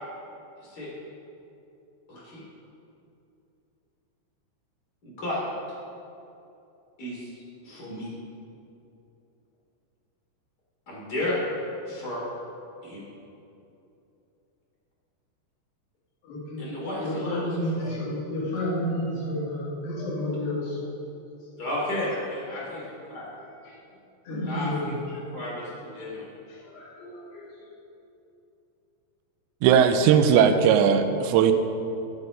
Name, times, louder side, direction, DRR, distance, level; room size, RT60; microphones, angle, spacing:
voice 1, 0.6-0.9 2.1-2.4 5.0-5.4 7.0-7.3 7.6-8.1 10.9-11.4 11.8-12.2 12.8-13.0 16.6-17.9 21.6-23.2 24.3-25.0 25.3-26.3, left 1 dB, 25° left, -5 dB, 2.8 m, -33 dB
voice 2, 16.2-16.6 17.0-20.8 23.7-23.8 24.3-24.9 26.5-27.5, left 1 dB, 65° left, -6 dB, 4.6 m, -31 dB
voice 3, 29.6-31.5, right 8 dB, 85° right, 8 dB, 2.9 m, -18 dB
15.5 x 6.5 x 5.3 m, 2.8 s
omnidirectional pair, 5.1 m